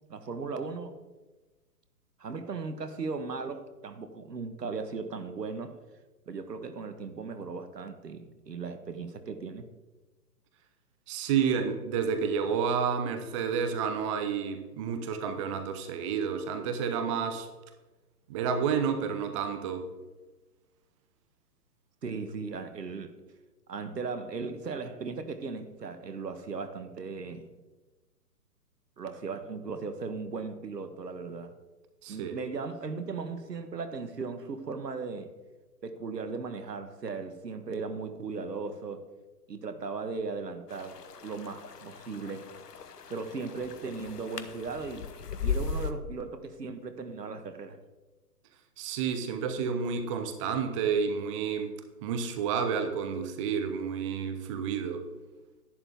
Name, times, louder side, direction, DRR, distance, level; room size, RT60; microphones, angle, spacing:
voice 1, 0.1-0.9 2.2-5.7 6.3-9.7 22.0-23.2 23.7-27.5 29.0-31.5 32.1-35.3 35.8-39.0 39.5-42.5 43.1-45.1 45.4-47.8, right 4 dB, 80° right, 9 dB, 1.4 m, -37 dB
voice 2, 11.1-17.5 18.3-19.9 32.0-32.4 48.8-51.8 52.0-55.1, right 6 dB, 20° right, 7 dB, 0.6 m, -30 dB
sound 1, 40.7-45.9, left 6 dB, 75° left, 1.1 m, -37 dB
11.5 x 11.0 x 3.5 m, 1.2 s
figure-of-eight pair, 130°, 48 cm